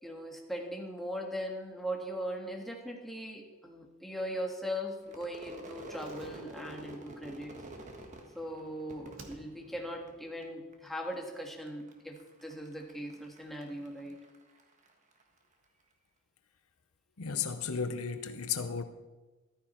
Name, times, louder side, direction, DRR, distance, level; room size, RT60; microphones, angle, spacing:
voice 1, 0.0-7.7 8.3-14.2, equal, ahead, 1.6 m, -39 dB
Crowd / Fireworks, 5.0-10.4 10.7-11.4 11.7-15.2, right 1 dB, 35° right, 1.5 m, -48 dB
Slam, 5.9-8.7 9.1-9.9 10.2-10.3, right 3 dB, 60° right, 1.4 m, -57 dB
voice 2, 17.2-18.8, left 6 dB, 75° left, 0.8 m, -34 dB
14.5 x 12.5 x 4.5 m
head